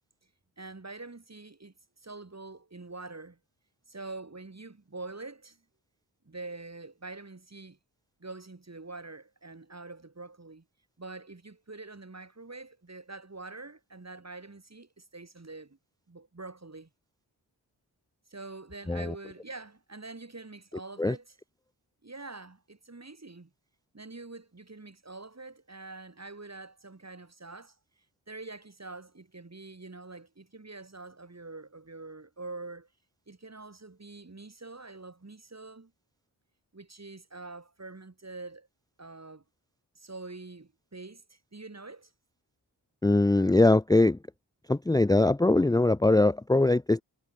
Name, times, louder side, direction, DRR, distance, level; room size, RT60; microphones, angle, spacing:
voice 1, 0.6-3.4 3.9-5.6 6.2-7.8 8.2-10.6 11.0-15.8 16.1-16.9 18.3-21.4 22.0-23.5 23.9-27.8 28.3-32.9 33.3-35.9 36.7-38.7 39.0-39.4 40.0-42.1, right 3 dB, 40° right, 5.5 m, -45 dB
voice 2, 43.0-44.2 44.7-47.0, left 2 dB, 10° left, 0.7 m, -22 dB
cardioid pair, 40°, 42 cm